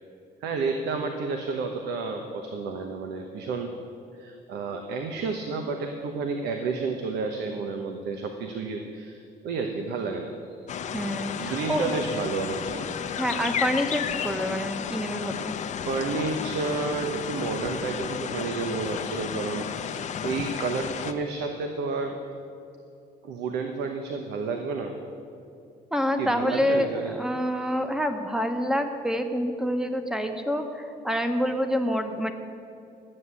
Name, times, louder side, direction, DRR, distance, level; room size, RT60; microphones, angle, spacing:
voice 1, 0.4-3.7 4.2-10.3 11.4-13.0 15.9-22.2 23.2-24.9 26.2-27.2, right 4 dB, 80° right, 4 dB, 1.1 m, -31 dB
sound 1, 10.7-21.1, left 8 dB, 45° left, 0.7 m, -33 dB
voice 2, 10.9-11.9 13.2-15.5 25.9-32.3, equal, 5° right, 6 dB, 1.1 m, -27 dB
12.0 x 7.7 x 8.3 m, 2.6 s
cardioid pair, 110°, 17 cm